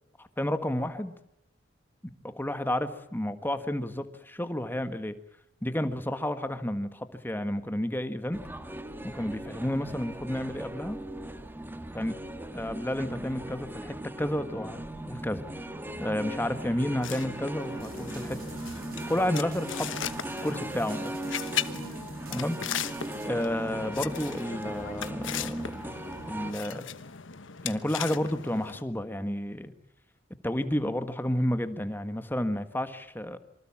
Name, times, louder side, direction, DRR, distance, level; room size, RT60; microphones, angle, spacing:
voice 1, 0.4-1.1 2.2-5.1 5.6-8.4 9.1-11.0 11.9-12.2 12.5-14.8 15.1-15.5 16.0-18.4 19.1-19.9 20.4-21.1 22.3-22.5 23.2-25.7 26.3-26.8 27.6-29.7 30.4-33.4, left 1 dB, 10° left, 10 dB, 1.6 m, -31 dB
sound 1, 8.3-26.5, right 1 dB, 10° right, 1.8 m, -38 dB
sound 2, 17.0-28.8, left 8 dB, 75° left, 1.2 m, -38 dB
sound 3, 17.8-23.3, right 6 dB, 50° right, 3.6 m, -50 dB
27.0 x 24.5 x 7.4 m, 0.78 s
head